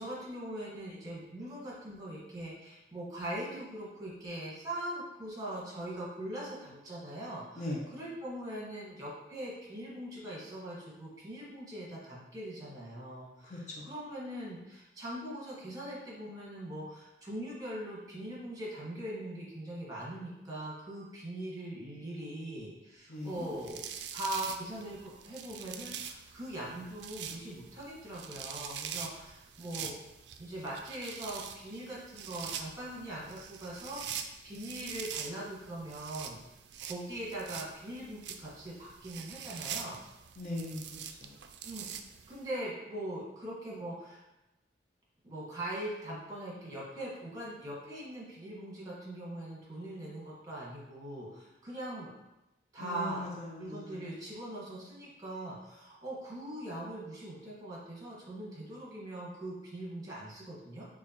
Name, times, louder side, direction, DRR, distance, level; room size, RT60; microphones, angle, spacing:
voice 1, 0.0-7.7 7.9-13.5 13.9-23.8 24.1-29.9 30.4-36.4 36.8-40.0 41.6-41.9 42.3-44.2 45.2-52.1 52.7-53.2 53.6-60.8, right 1 dB, 20° right, -6 dB, 1.3 m, -41 dB
voice 2, 13.4-13.9 23.1-23.5 40.4-41.4 52.8-54.1, left 1 dB, 40° left, -2 dB, 0.6 m, -40 dB
sound 1, 23.3-42.5, right 8 dB, 80° right, 0.3 m, -44 dB
6.2 x 2.4 x 2.8 m, 0.98 s
head